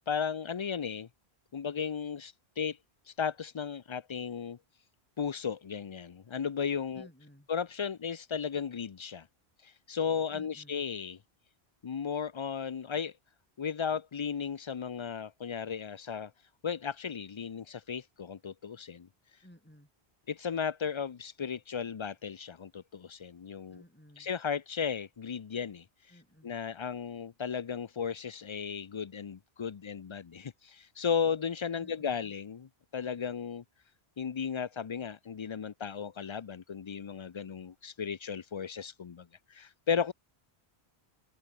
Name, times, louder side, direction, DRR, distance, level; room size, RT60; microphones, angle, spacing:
voice 1, 0.1-1.1 1.5-2.8 3.1-4.6 5.2-7.1 7.5-9.3 9.6-11.2 11.8-13.1 13.6-16.3 16.6-19.1 20.3-23.8 24.2-33.6 34.2-40.1, left 7 dB, 45° left, 0.4 m, -35 dB
voice 2, 6.9-7.5 10.3-10.8 19.4-19.9 23.7-24.3 26.1-26.5 31.8-32.3, equal, 10° left, 3.6 m, -56 dB
omnidirectional pair, 1.1 m